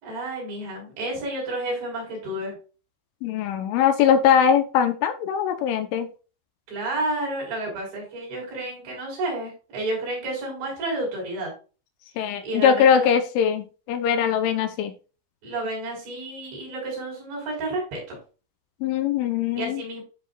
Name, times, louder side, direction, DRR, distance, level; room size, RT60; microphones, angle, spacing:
voice 1, 0.0-2.5 6.7-11.5 12.4-13.2 15.4-18.2 19.5-20.0, right 2 dB, 65° right, -2 dB, 6.5 m, -31 dB
voice 2, 3.2-6.1 12.2-14.9 18.8-19.8, left 8 dB, 80° left, 7 dB, 3.2 m, -21 dB
12.5 x 5.2 x 2.4 m, 0.34 s
omnidirectional pair, 5.7 m